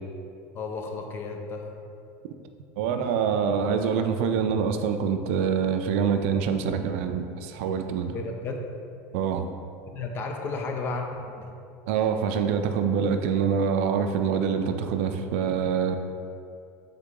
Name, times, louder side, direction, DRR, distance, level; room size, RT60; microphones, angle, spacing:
voice 1, 0.5-1.8 8.1-8.7 9.9-11.5, left 3 dB, 30° left, 3 dB, 0.4 m, -33 dB
voice 2, 2.8-8.1 9.1-9.5 11.9-16.0, right 7 dB, 75° right, 7 dB, 0.3 m, -25 dB
3.8 x 3.7 x 3.6 m, 2.5 s
supercardioid pair, 135°, 7 cm